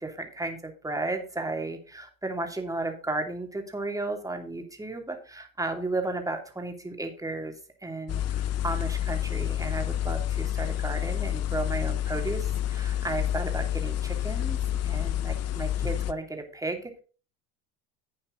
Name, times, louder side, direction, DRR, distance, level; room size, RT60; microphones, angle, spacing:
voice 1, 0.0-7.5 7.8-17.0, right 2 dB, 5° right, 4 dB, 2.9 m, -34 dB
sound 1, 8.1-16.1, left 11 dB, 35° left, 0.8 m, -29 dB
11.0 x 8.7 x 3.9 m, 0.37 s
hypercardioid pair, 85°, 44 cm